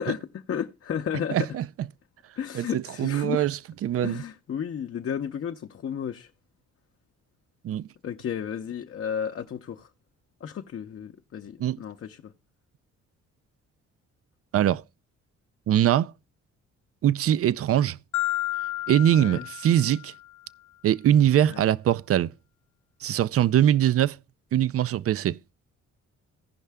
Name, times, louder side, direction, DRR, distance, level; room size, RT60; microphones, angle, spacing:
voice 1, 0.0-1.5 2.4-3.5 4.0-6.3 8.0-9.9 10.4-12.3 19.1-19.5 21.4-21.6, left 8 dB, 45° left, 0.7 m, -33 dB
voice 2, 1.3-1.9 2.5-4.2 7.6-7.9 11.6-11.8 14.5-14.8 15.7-16.1 17.0-18.0 18.9-20.1 20.8-22.3 23.0-24.2 24.5-25.4, right 11 dB, 50° right, 0.5 m, -22 dB
Marimba xylophone, 18.1-20.3, left 15 dB, 85° left, 0.5 m, -31 dB
16.0 x 5.5 x 3.4 m
cardioid pair, 90°, 30 cm